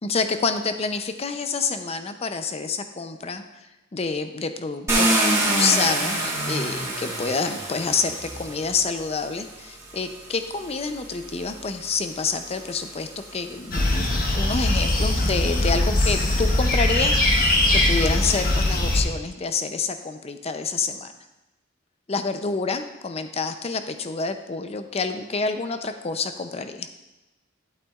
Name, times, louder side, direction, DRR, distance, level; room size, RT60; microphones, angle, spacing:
voice 1, 0.0-3.4 3.9-17.2 17.7-21.1 22.1-26.9, left 4 dB, 35° left, 8 dB, 0.5 m, -28 dB
Car, 4.9-9.0 9.9-10.0 10.6-13.9, right 1 dB, 15° right, 2.1 m, -26 dB
sound 1, 13.7-19.0, left 1 dB, 50° left, 1.2 m, -21 dB
11.5 x 8.2 x 2.4 m, 1.0 s
head